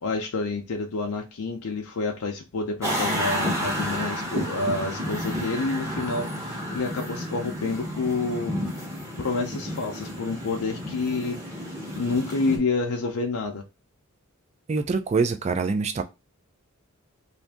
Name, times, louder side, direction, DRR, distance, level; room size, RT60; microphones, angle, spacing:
voice 1, 0.0-8.5 9.2-11.4 11.9-13.6, left 3 dB, 75° left, 0.5 m, -28 dB
sound 1, 2.8-12.6, equal, 15° right, 0.9 m, -31 dB
voice 2, 14.7-16.0, right 4 dB, 30° right, 0.4 m, -24 dB
2.6 x 2.5 x 3.4 m
head